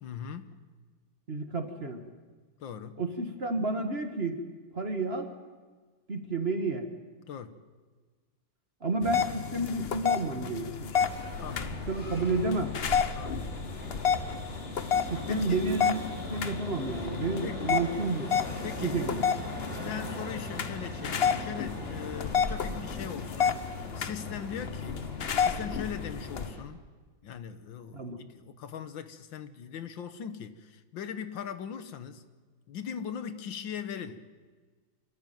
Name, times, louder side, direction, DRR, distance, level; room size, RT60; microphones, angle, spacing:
voice 1, 0.0-0.5 2.6-3.0 7.3-7.6 11.4-11.8 13.1-13.5 15.3-15.6 17.4-17.7 18.6-19.1 19.8-25.1 25.4-26.8 27.2-32.2 32.7-34.3, left 8 dB, 75° left, 1.8 m, -40 dB
voice 2, 1.3-2.0 3.0-4.4 4.7-5.3 6.1-6.9 8.8-10.9 11.9-12.8 15.1-18.3 18.8-19.2 27.9-28.2, right 3 dB, 35° right, 1.8 m, -31 dB
sound 1, 9.0-26.5, left 7 dB, 50° left, 0.8 m, -31 dB
sound 2, 11.0-26.6, left 1 dB, 30° left, 3.5 m, -39 dB
26.0 x 14.0 x 9.2 m
omnidirectional pair, 2.1 m